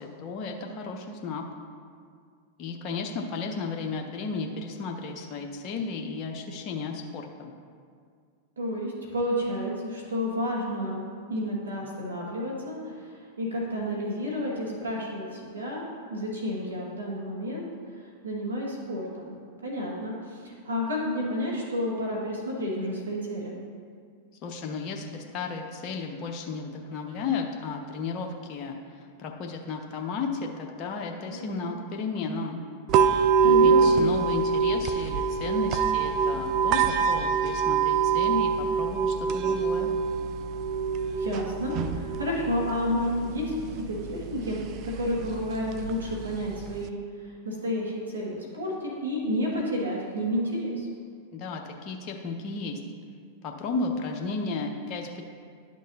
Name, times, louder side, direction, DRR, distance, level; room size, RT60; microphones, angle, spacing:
voice 1, 0.0-1.4 2.6-7.5 24.4-32.6 33.4-40.0 51.3-52.8 53.4-55.2, left 4 dB, 40° left, 1 dB, 0.8 m, -34 dB
voice 2, 8.6-11.0 11.3-17.7 17.9-23.6 31.3-31.8 33.4-34.1 41.1-43.5 43.9-50.9, equal, 90° right, -3 dB, 1.9 m, -31 dB
sound 1, 32.9-46.9, right 6 dB, 45° right, 0.5 m, -25 dB
11.0 x 6.3 x 2.8 m, 2.1 s
hypercardioid pair, 100°, 0 cm